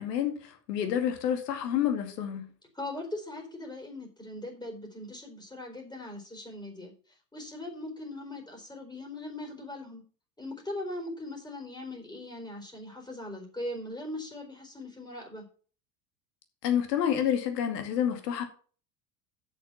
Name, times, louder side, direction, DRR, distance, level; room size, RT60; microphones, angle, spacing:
voice 1, 0.0-2.5 16.6-18.4, left 9 dB, 75° left, 2.3 m, -29 dB
voice 2, 2.7-6.9 7.3-10.0 10.4-15.5, left 1 dB, 10° left, 4.2 m, -40 dB
7.2 x 6.3 x 6.9 m
hypercardioid pair, 90°, 48 cm